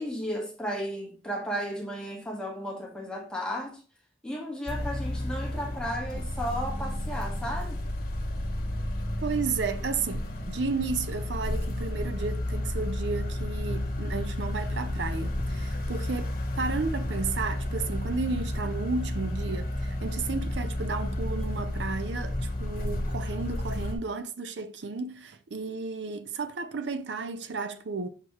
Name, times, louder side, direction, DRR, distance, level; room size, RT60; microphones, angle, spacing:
voice 1, 0.0-3.8 4.2-7.8, equal, 5° left, 1.5 m, -34 dB
sound 1, 4.7-24.0, left 1 dB, 50° left, 1.4 m, -32 dB
voice 2, 9.2-28.1, right 4 dB, 70° right, 0.6 m, -33 dB
6.7 x 4.7 x 3.0 m
head